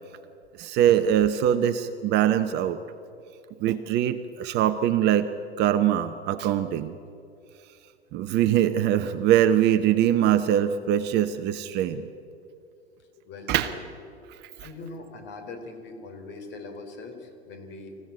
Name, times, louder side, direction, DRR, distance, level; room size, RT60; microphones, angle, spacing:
voice 1, 0.6-2.8 3.6-5.3 5.6-6.9 8.1-12.0 13.5-13.7, right 11 dB, 30° right, 10 dB, 0.8 m, -22 dB
voice 2, 13.0-13.8 14.6-18.0, left 3 dB, 35° left, 5 dB, 3.9 m, -41 dB
26.0 x 15.5 x 8.7 m, 2.6 s
figure-of-eight pair, 100°, 33 cm